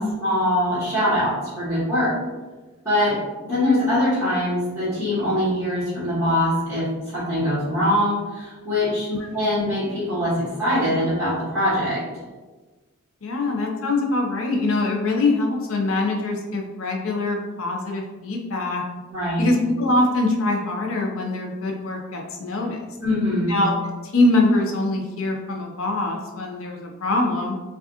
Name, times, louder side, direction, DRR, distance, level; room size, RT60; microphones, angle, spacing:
voice 1, 0.2-2.1 2.8-12.0 19.1-19.5 23.0-23.6, left 1 dB, 15° right, -16 dB, 1.4 m, -23 dB
voice 2, 13.2-18.8 19.4-22.8 23.5-23.7 24.1-27.6, left 2 dB, 70° left, 1 dB, 0.5 m, -23 dB
4.7 x 2.4 x 2.7 m, 1.3 s
head